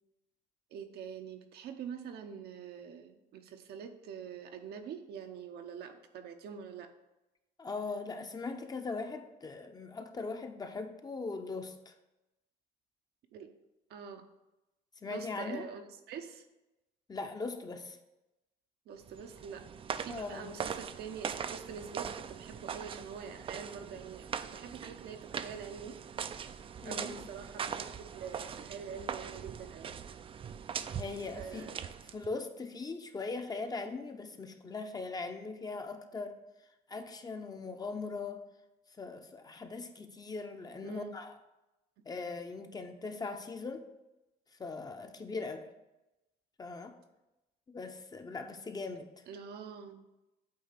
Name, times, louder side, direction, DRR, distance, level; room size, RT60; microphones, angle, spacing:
voice 1, 0.7-6.9 13.3-13.5 13.9-14.2 15.1-15.8 16.1-16.4 18.9-19.6 20.0-26.0 26.8-27.9 28.1-29.9 31.4-31.7 40.8-41.1 49.3-50.1, right 7 dB, 70° right, 6 dB, 0.8 m, -45 dB
voice 2, 7.6-11.9 15.0-15.7 17.1-18.0 20.1-20.5 26.8-27.3 30.9-31.7 32.1-36.3 36.9-38.4 39.0-41.4 42.1-43.8 44.6-45.7 46.6-47.0 47.7-49.1, left 3 dB, 25° left, 6 dB, 0.6 m, -40 dB
sound 1, 19.0-32.3, right 7 dB, 35° right, 0.4 m, -41 dB
8.3 x 2.9 x 5.8 m, 0.98 s
cardioid pair, 110°, 17 cm